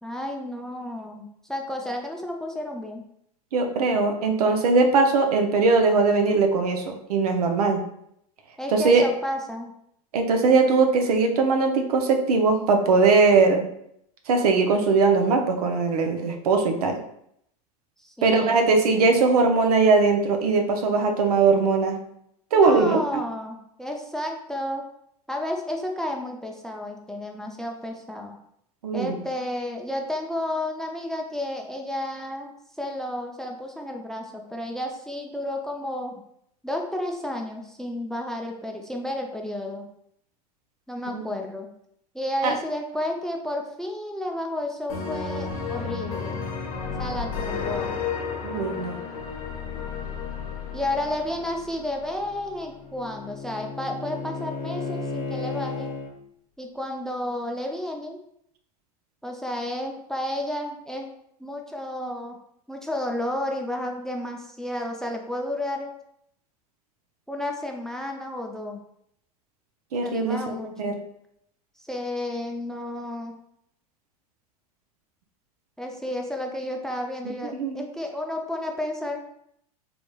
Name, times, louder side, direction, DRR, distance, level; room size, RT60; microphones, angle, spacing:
voice 1, 0.0-3.0 8.6-9.7 18.0-18.6 22.5-24.9 25.3-28.4 28.9-36.2 36.6-39.8 40.9-41.7 42.1-46.4 47.0-47.9 50.7-55.9 56.6-58.2 59.2-61.1 61.4-62.4 62.7-65.9 67.3-68.8 70.0-71.0 71.8-73.3 75.8-79.2, left 1 dB, 5° left, 2 dB, 0.4 m, -31 dB
voice 2, 3.5-7.8 8.7-9.0 10.1-13.7 14.3-17.0 18.2-22.0 22.5-23.0 28.8-29.2 41.1-41.2 42.4-42.5 48.4-49.0 69.9-71.0 77.4-77.8, right 4 dB, 75° right, 5 dB, 0.6 m, -20 dB
sound 1, 44.9-52.5, left 5 dB, 65° left, 0.9 m, -32 dB
Bowed string instrument, 52.0-56.1, left 4 dB, 35° left, 0.8 m, -34 dB
3.4 x 2.9 x 2.3 m, 0.73 s
hypercardioid pair, 90°, 20 cm